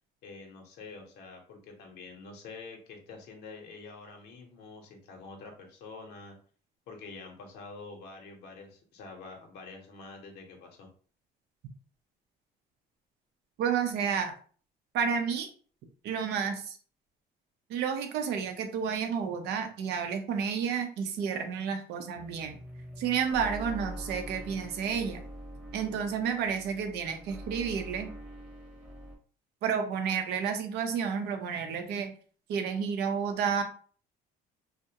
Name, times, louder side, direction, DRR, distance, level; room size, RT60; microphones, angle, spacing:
voice 1, 0.2-6.4 6.9-10.9, left 4 dB, 75° left, 2 dB, 0.7 m, -47 dB
voice 2, 13.6-14.3 14.9-15.5 16.0-16.8 17.7-22.6 23.0-25.2 25.7-28.1 29.6-32.1 32.5-33.6, right 7 dB, 75° right, 6 dB, 0.6 m, -31 dB
sound 1, 22.2-29.2, right 1 dB, 5° right, 0.8 m, -44 dB
2.3 x 2.0 x 2.8 m, 0.43 s
cardioid pair, 110°, 17 cm